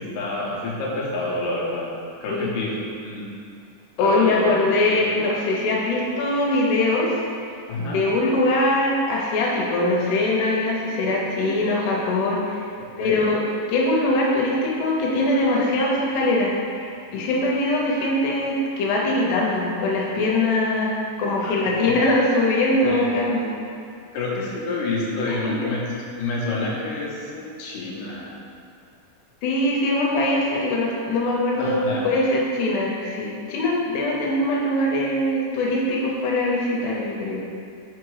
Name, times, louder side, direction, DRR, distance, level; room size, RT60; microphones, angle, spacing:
voice 1, 0.0-1.9 2.2-2.8 3.0-3.3 4.0-4.5 4.9-5.0 7.7-8.0 13.0-13.2 21.4-21.6 22.8-23.1 24.1-25.9 26.2-28.3 31.6-32.0, left 2 dB, 65° left, -5 dB, 2.4 m, -28 dB
voice 2, 4.0-7.2 7.8-12.7 13.0-13.4 13.7-20.9 21.2-23.5 25.3-25.5 29.4-37.5, left 2 dB, 80° left, -3 dB, 2.9 m, -22 dB
5.9 x 4.8 x 4.7 m, 2.4 s
omnidirectional pair, 4.6 m